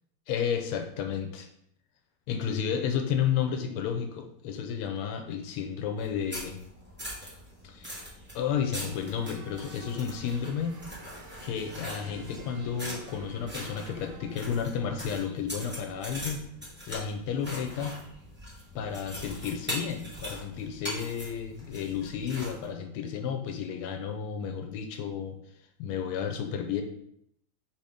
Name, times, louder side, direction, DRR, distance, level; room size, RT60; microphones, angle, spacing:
voice 1, 0.3-1.5 2.3-6.6 7.6-8.0 8.3-10.8 11.4-16.4 16.9-18.0 18.7-25.4 25.8-26.8, left 7 dB, 90° left, 5 dB, 1.5 m, -32 dB
sound 1, 4.1-15.0, equal, 45° left, 1.1 m, -53 dB
sound 2, 6.0-22.6, equal, 10° right, 0.8 m, -42 dB
sound 3, 8.8-14.4, right 5 dB, 85° right, 1.5 m, -53 dB
3.8 x 2.8 x 4.8 m, 0.73 s
omnidirectional pair, 2.4 m